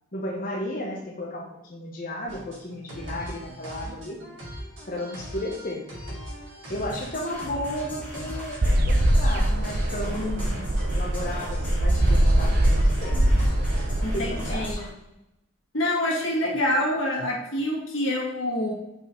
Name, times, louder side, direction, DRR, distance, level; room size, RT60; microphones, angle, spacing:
voice 1, 0.1-4.2 4.9-5.8 6.7-13.3 14.0-14.8, left 1 dB, 45° left, -2 dB, 0.9 m, -34 dB
sound 1, 2.3-14.0, equal, 70° right, 2.4 m, -40 dB
sound 2, 6.9-14.9, left 1 dB, 10° left, 2.1 m, -39 dB
sound 3, 8.6-14.7, right 1 dB, 50° right, 0.6 m, -22 dB
voice 2, 14.0-14.9 15.7-18.7, left 1 dB, 85° left, -2 dB, 1.9 m, -26 dB
5.4 x 4.1 x 4.4 m, 0.90 s
head